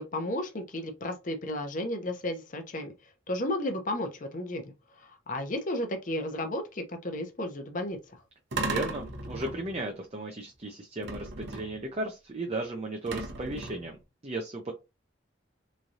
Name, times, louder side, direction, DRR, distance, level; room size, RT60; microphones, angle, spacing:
voice 1, 0.0-2.9 3.3-8.2, left 1 dB, 40° left, 0.7 m, -33 dB
sound 1, 8.5-9.9 11.0-11.9 13.1-14.0, right 3 dB, 60° right, 0.8 m, -36 dB
voice 2, 8.6-14.7, right 2 dB, 30° right, 0.5 m, -35 dB
3.6 x 3.2 x 2.7 m
head